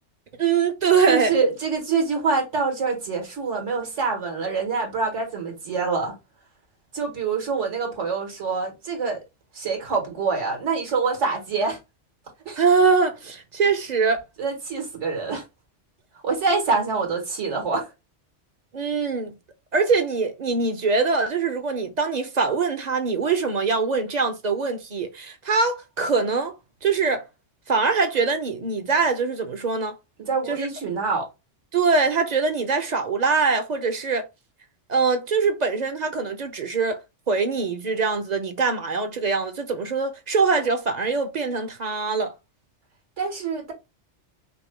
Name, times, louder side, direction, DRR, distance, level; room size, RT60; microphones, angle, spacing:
voice 1, 0.4-1.3 12.6-14.2 18.7-19.3 19.7-26.5 26.8-27.3 27.7-30.0 30.5-30.7 31.7-34.3 34.9-37.0 37.3-42.3, right 4 dB, 45° right, 0.6 m, -23 dB
voice 2, 1.1-6.2 6.9-9.2 9.5-11.8 12.4-12.6 14.4-15.4 16.2-17.9 30.2-31.3 43.2-43.7, right 4 dB, 80° right, 1.8 m, -25 dB
5.2 x 2.2 x 3.3 m
omnidirectional pair, 1.2 m